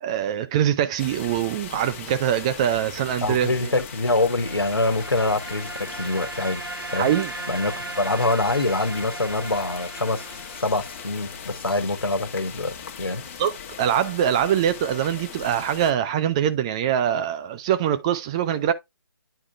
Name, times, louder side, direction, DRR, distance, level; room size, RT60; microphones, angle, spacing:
voice 1, 0.0-3.7 7.0-7.3 13.4-18.7, right 10 dB, 15° right, 0.4 m, -23 dB
sound 1, 1.0-15.9, left 7 dB, 35° left, 1.2 m, -39 dB
voice 2, 3.2-7.1 7.5-10.3 10.6-13.2, left 2 dB, 80° left, 1.3 m, -25 dB
sound 2, 3.6-11.4, right 2 dB, 70° right, 1.1 m, -37 dB
9.8 x 4.9 x 2.3 m
figure-of-eight pair, 140°, 12 cm